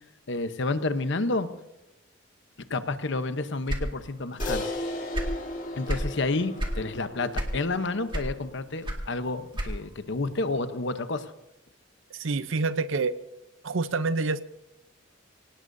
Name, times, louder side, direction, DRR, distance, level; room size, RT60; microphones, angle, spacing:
voice 1, 0.3-1.5 2.7-4.7 5.8-11.3, left 3 dB, 65° left, 10 dB, 0.9 m, -30 dB
sound 1, 3.7-4.7 5.0-6.1 6.6-6.8 7.3-7.8 8.1-10.0, equal, 25° right, 2.0 m, -31 dB
Crash cymbal, 4.4-9.0, left 1 dB, 40° left, 1.9 m, -36 dB
voice 2, 12.1-13.2 13.6-14.4, right 3 dB, 75° right, 13 dB, 0.7 m, -27 dB
24.5 x 18.0 x 2.7 m, 0.92 s
head